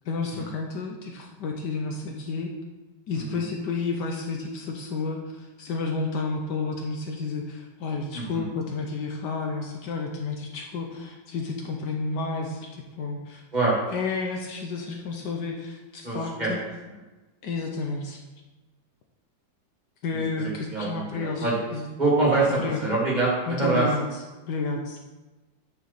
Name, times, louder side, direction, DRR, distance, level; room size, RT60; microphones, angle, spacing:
voice 1, 0.0-2.5 3.1-13.4 13.9-16.6 17.4-18.2 20.0-21.9 22.5-22.8 23.5-24.0 24.5-25.0, left 4 dB, 70° left, 2 dB, 1.3 m, -31 dB
voice 2, 16.0-16.5 20.1-21.6 22.0-23.9, right 3 dB, 20° right, -6 dB, 2.2 m, -25 dB
9.2 x 5.0 x 4.1 m, 1.2 s
omnidirectional pair, 2.1 m